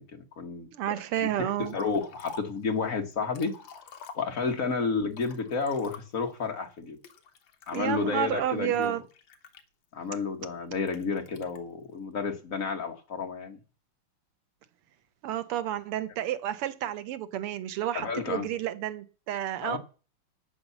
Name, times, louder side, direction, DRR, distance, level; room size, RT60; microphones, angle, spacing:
voice 1, 0.0-0.7 1.2-3.5 4.1-7.0 7.7-9.0 9.9-13.6 17.9-18.5 19.6-19.8, left 4 dB, 40° left, 1.5 m, -31 dB
voice 2, 0.7-1.8 7.7-9.0 15.2-19.8, right 11 dB, 85° right, 1.8 m, -31 dB
Liquid, 1.6-2.6 3.1-4.6 5.1-6.3 7.0-7.8 8.4-10.1 10.9-11.6, left 5 dB, 60° left, 1.9 m, -48 dB
9.5 x 8.5 x 7.0 m
omnidirectional pair, 2.4 m